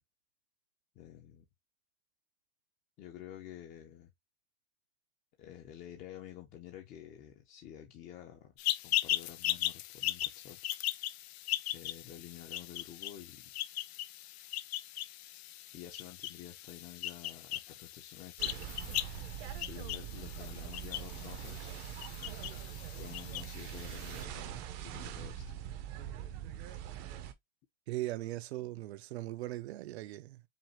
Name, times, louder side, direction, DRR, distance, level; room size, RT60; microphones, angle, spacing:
voice 1, 0.9-1.5 3.0-4.1 5.4-8.6 8.8-10.6 11.7-13.5 15.7-18.9 19.6-21.8 23.0-25.5, left 11 dB, 25° left, 0.5 m, -50 dB
sound 1, 8.6-24.3, left 14 dB, 80° left, 0.5 m, -38 dB
sound 2, 18.4-27.3, right 10 dB, 30° right, 0.5 m, -43 dB
voice 2, 27.9-30.4, right 16 dB, 85° right, 0.6 m, -39 dB
5.3 x 2.3 x 2.9 m
supercardioid pair, 160°, 31 cm